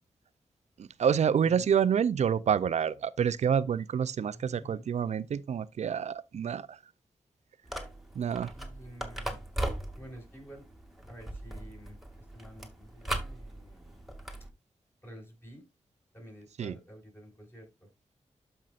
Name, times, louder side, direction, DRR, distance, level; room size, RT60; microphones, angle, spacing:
voice 1, 0.8-6.8 8.1-8.5 16.6-16.7, right 7 dB, 75° right, 0.5 m, -28 dB
voice 2, 4.3-4.9 8.5-9.4 9.9-10.7 11.1-14.0 15.0-15.6 16.1-17.9, equal, 20° left, 6.0 m, -50 dB
sound 1, 7.6-14.5, right 1 dB, ahead, 2.2 m, -39 dB
12.0 x 5.6 x 2.5 m
cardioid pair, 50°, 12 cm